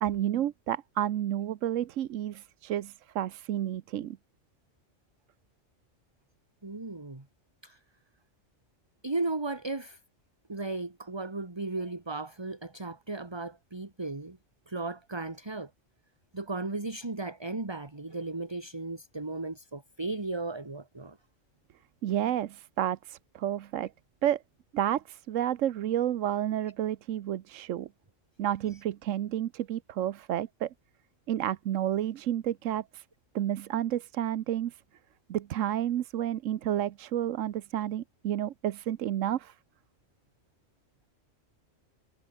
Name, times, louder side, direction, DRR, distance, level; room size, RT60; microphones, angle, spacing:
voice 1, 0.0-4.2 22.0-23.9 24.2-24.4 24.7-27.9 28.4-30.7 31.3-33.0 33.3-34.7 35.3-39.5, right 11 dB, 85° right, 1.1 m, -30 dB
voice 2, 6.6-7.3 7.6-7.8 9.0-10.0 10.5-14.4 14.7-15.7 16.3-21.2, right 2 dB, 20° right, 1.8 m, -35 dB
omnidirectional pair, 1.3 m